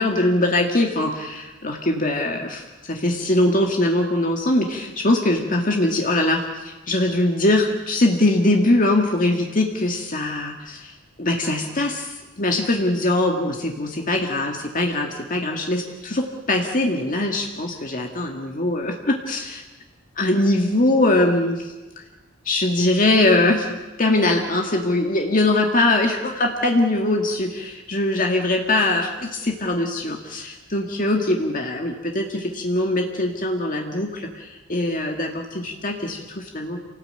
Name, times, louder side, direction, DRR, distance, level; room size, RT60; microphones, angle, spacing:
voice 1, 0.0-19.6 20.2-21.7 22.4-36.8, left 2 dB, 40° left, 2 dB, 2.0 m, -22 dB
28.5 x 18.5 x 8.9 m, 1.2 s
head